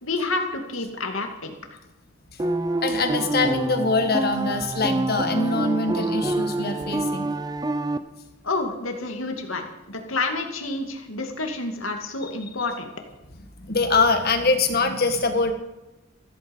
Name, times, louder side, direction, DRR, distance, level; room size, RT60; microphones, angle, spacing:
voice 1, 0.0-1.8 8.4-12.9, left 3 dB, 85° left, 3 dB, 2.4 m, -29 dB
sound 1, 2.4-8.0, right 2 dB, 20° right, 0.7 m, -26 dB
voice 2, 2.8-7.3 13.6-15.5, left 3 dB, 50° left, 6 dB, 1.8 m, -23 dB
15.0 x 14.0 x 5.5 m, 1.0 s
head